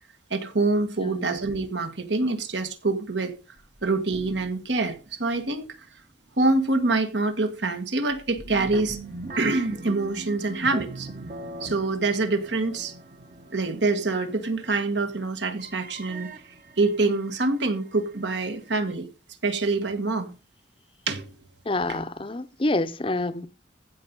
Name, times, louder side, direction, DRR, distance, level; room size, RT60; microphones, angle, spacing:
voice 1, 0.3-3.3 3.8-5.8 6.4-9.0 9.4-11.1 11.6-12.9 13.5-16.3 16.8-19.1 19.4-20.3 21.1-21.4 21.9-22.0, right 3 dB, 70° right, 1.7 m, -25 dB
voice 2, 1.0-1.4 21.7-23.5, left 2 dB, 30° left, 0.6 m, -27 dB
sound 1, 3.6-5.2 5.5-5.7 6.2-6.4 8.1-18.8, right 2 dB, 45° right, 1.2 m, -41 dB
15.0 x 5.3 x 5.4 m
head